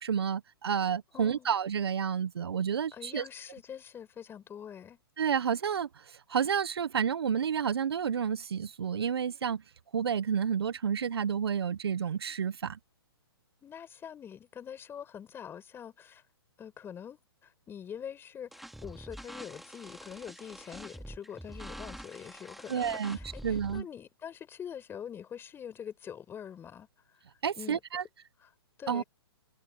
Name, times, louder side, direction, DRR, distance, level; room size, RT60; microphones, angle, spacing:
voice 1, 0.0-3.2 5.2-9.6 9.9-12.8 22.7-23.2 23.4-23.8 27.4-28.0 28.9-29.0, right 7 dB, 75° right, 1.1 m, -30 dB
voice 2, 1.1-1.6 2.9-5.0 13.6-16.2 16.6-26.9 27.6-27.8 28.4-28.5 28.8-29.0, left 8 dB, 15° left, 5.7 m, -44 dB
sound 1, 18.5-23.8, equal, ahead, 3.6 m, -46 dB
hypercardioid pair, 130°, 13 cm